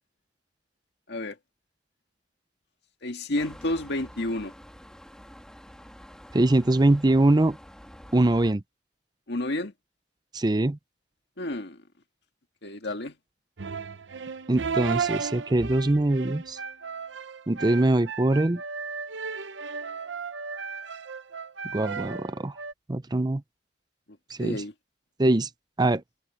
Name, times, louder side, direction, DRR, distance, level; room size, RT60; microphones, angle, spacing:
voice 1, 3.0-4.5 9.3-9.7 11.4-11.8 12.6-13.1 24.4-24.7, left 1 dB, 65° left, 2.0 m, -30 dB
sound 1, 3.4-8.5, equal, 5° left, 3.0 m, -48 dB
voice 2, 6.3-7.6 8.1-8.6 10.3-10.8 14.5-16.6 17.5-18.6 21.7-22.5 22.9-23.4 24.4-24.6 25.2-25.5 25.8-26.0, right 2 dB, 25° right, 0.6 m, -22 dB
sound 2, 13.6-22.7, right 5 dB, 75° right, 0.8 m, -34 dB
head